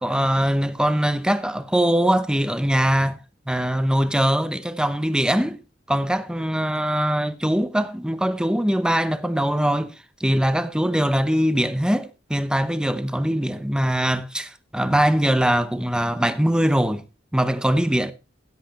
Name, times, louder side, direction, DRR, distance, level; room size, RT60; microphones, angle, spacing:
voice 1, 0.0-3.2 3.5-5.6 5.9-9.9 10.2-17.0 17.3-18.1, equal, 5° right, 0.8 m, -22 dB
16.5 x 8.1 x 3.2 m
head